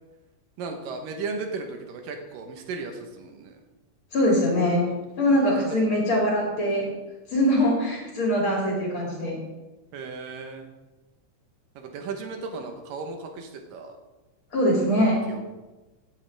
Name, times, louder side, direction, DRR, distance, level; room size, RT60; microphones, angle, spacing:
voice 1, 0.6-3.6 4.9-5.0 5.6-5.8 9.9-10.7 11.8-13.9 15.0-15.6, right 4 dB, 85° right, 4 dB, 2.8 m, -36 dB
voice 2, 4.1-4.8 5.2-6.9 7.3-9.4 14.5-15.2, equal, 40° left, -3 dB, 3.5 m, -22 dB
16.0 x 9.5 x 3.5 m, 1.1 s
omnidirectional pair, 3.8 m